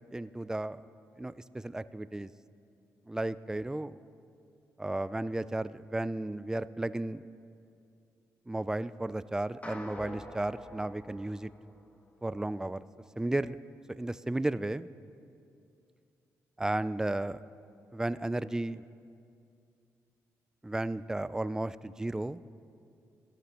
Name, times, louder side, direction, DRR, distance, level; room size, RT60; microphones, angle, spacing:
voice 1, 0.1-0.8 1.2-2.3 3.1-4.0 4.8-7.2 8.5-11.5 12.2-12.8 13.2-13.6 13.9-14.9 16.6-17.4 17.9-18.8 20.6-22.4, right 2 dB, 10° right, 16 dB, 0.3 m, -34 dB
sound 1, 9.6-12.1, left 1 dB, 20° left, 1.4 m, -46 dB
16.0 x 13.0 x 3.0 m, 2.5 s
supercardioid pair, 55°, 7 cm